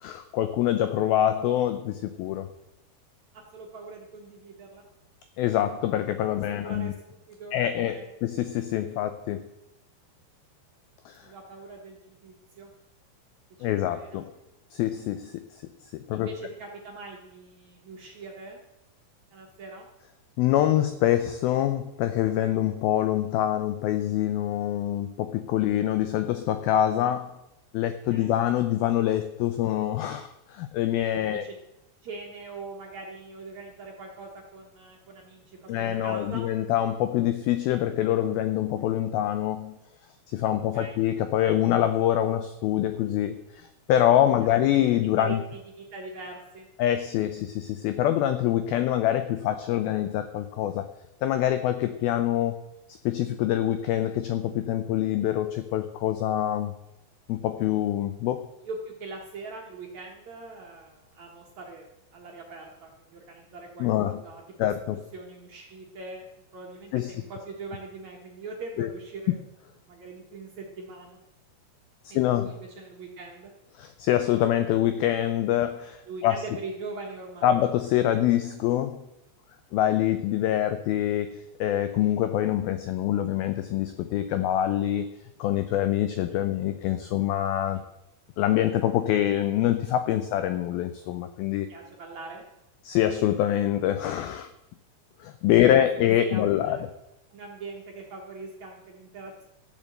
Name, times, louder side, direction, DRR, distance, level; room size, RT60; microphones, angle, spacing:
voice 1, 0.0-2.5 5.4-6.9 7.5-9.5 11.1-11.3 13.6-14.3 14.7-15.6 15.9-16.3 20.4-27.3 27.7-31.4 35.7-39.8 40.3-45.4 46.8-50.9 51.2-52.6 53.1-56.7 57.3-58.5 63.8-64.2 64.6-65.0 66.9-67.1 68.8-68.9 72.2-72.5 73.8-76.4 77.4-79.0 79.7-85.1 85.4-87.8 88.4-91.7 92.9-94.5 95.2-96.8, left 12 dB, 85° left, 10 dB, 2.1 m, -25 dB
voice 2, 3.3-4.8 6.5-7.6 7.9-8.1 11.2-12.7 13.6-14.2 16.1-18.6 19.3-19.9 28.1-28.3 31.2-31.5 32.0-36.5 40.4-41.0 44.3-44.6 45.2-46.7 58.6-61.9 62.1-64.7 65.1-66.2 66.5-69.4 69.8-71.2 72.1-73.5 76.1-77.6 87.7-87.9 91.7-92.4 95.7-95.8 96.2-96.8 97.3-99.5, right 3 dB, 60° right, 0 dB, 2.0 m, -42 dB
13.5 x 7.3 x 7.7 m, 0.91 s
omnidirectional pair, 5.1 m